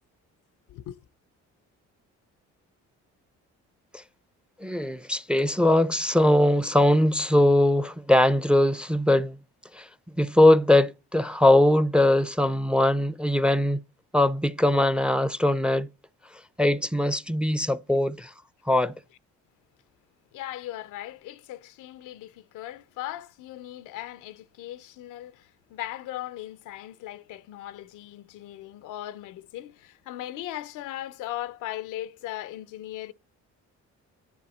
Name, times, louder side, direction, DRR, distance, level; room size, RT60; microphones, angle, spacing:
voice 1, 0.7-1.0 20.3-33.1, left 14 dB, 90° left, 0.6 m, -38 dB
voice 2, 4.6-9.4 9.7-9.9 10.2-13.8 14.1-15.9 16.6-18.3 18.7-19.0, left 1 dB, 5° right, 0.4 m, -21 dB
10.5 x 7.6 x 4.2 m
cardioid pair, 90°, 30 cm